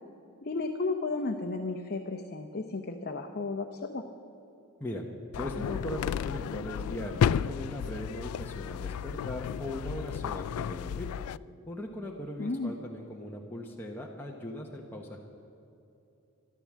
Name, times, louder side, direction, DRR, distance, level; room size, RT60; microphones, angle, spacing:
voice 1, 0.4-4.0 12.4-12.7, left 3 dB, 45° left, 5 dB, 0.7 m, -33 dB
sound 1, 5.3-11.4, left 8 dB, 85° left, 0.3 m, -32 dB
voice 2, 5.4-11.1 11.7-15.2, left 1 dB, 10° left, -1 dB, 0.9 m, -39 dB
13.5 x 12.0 x 7.4 m, 2.8 s
head